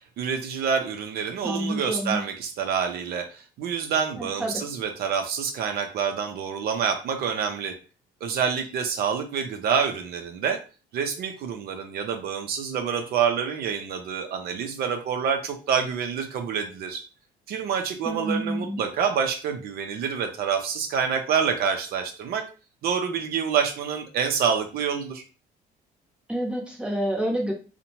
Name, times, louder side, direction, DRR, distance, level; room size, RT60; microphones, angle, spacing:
voice 1, 0.2-7.7 8.2-10.6 10.9-17.0 17.5-22.4 22.8-25.2, right 7 dB, 65° right, 5 dB, 0.5 m, -27 dB
voice 2, 1.4-2.2 4.1-4.6 18.0-18.8 26.3-27.5, right 1 dB, 5° right, 0 dB, 0.8 m, -28 dB
2.6 x 2.1 x 2.9 m, 0.35 s
cardioid pair, 110°, 17 cm